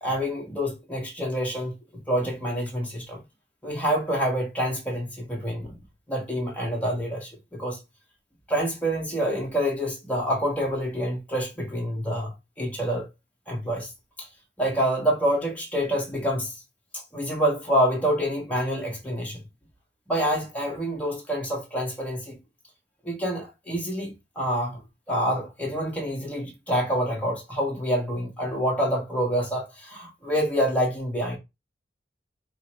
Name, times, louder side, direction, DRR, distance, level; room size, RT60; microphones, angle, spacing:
voice 1, 0.0-1.7 2.1-3.2 3.6-5.8 6.1-7.8 8.5-12.3 12.6-13.1 13.5-13.9 14.2-14.3 14.6-16.6 16.9-19.4 20.1-22.4 23.0-24.8 25.1-31.4, equal, 10° left, 1.1 m, -27 dB
4.5 x 2.1 x 4.5 m
head